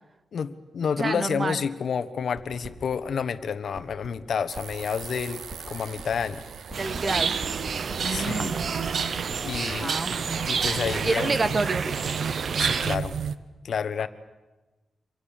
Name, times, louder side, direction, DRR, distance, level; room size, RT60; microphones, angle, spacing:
voice 1, 0.3-6.4 8.1-8.6 9.4-9.9 10.4-11.3 12.6-13.1 13.6-14.1, left 6 dB, 65° left, 12 dB, 1.3 m, -29 dB
voice 2, 1.0-1.6 6.8-7.3 8.0-8.8 9.8-10.4 11.0-11.9, right 3 dB, 35° right, 12 dB, 1.5 m, -28 dB
sound 1, 2.3-3.0 3.2-3.3 3.5-11.7 12.0-12.3, right 2 dB, 15° right, 4.6 m, -40 dB
sound 2, 4.5-13.3, right 7 dB, 90° right, 1.1 m, -36 dB
sound 3, 6.7-13.0, right 6 dB, 55° right, 0.9 m, -29 dB
28.0 x 26.0 x 7.4 m, 1.2 s
wide cardioid pair, 120°, 0 cm